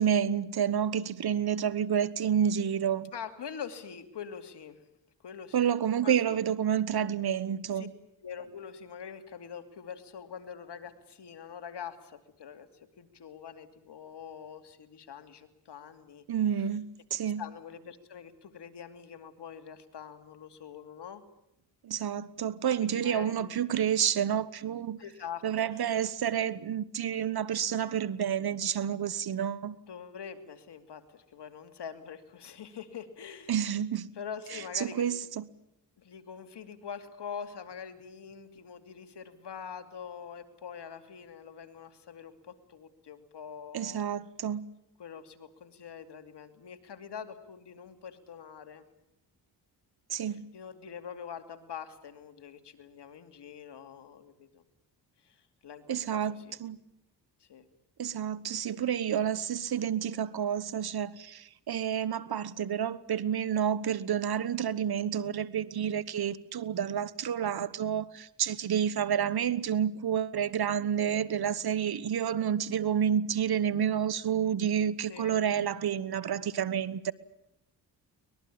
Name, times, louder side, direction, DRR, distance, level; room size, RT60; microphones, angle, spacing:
voice 1, 0.0-3.1 5.5-7.9 16.3-17.4 21.8-25.0 25.4-29.7 33.5-34.1 34.7-35.4 43.7-44.7 50.1-50.5 55.9-56.8 58.0-77.1, right 8 dB, 55° right, 1.2 m, -29 dB
voice 2, 3.1-4.8 5.2-5.7 6.0-6.4 7.7-7.9 8.2-16.2 17.4-21.2 22.8-23.4 25.0-25.8 29.9-33.6 34.2-35.0 36.0-44.1 45.0-48.8 50.2-54.6 55.2-56.6 57.4-57.6 75.1-75.4, left 7 dB, 65° left, 2.8 m, -44 dB
24.0 x 21.0 x 8.7 m
cardioid pair, 70°, 44 cm